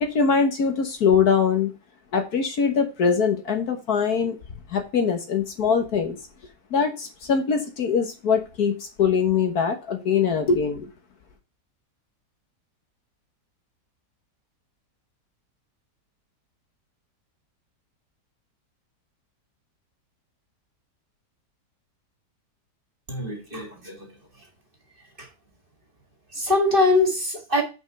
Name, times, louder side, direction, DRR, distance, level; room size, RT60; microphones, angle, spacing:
voice 1, 0.0-1.7 2.1-4.4 4.7-6.2 6.7-10.9, left 6 dB, 65° left, 1.7 m, -22 dB
voice 2, 23.1-24.1 24.4-24.5 25.2-25.3 26.3-27.6, left 2 dB, 30° right, 2.0 m, -23 dB
6.3 x 5.3 x 6.6 m
omnidirectional pair, 1.8 m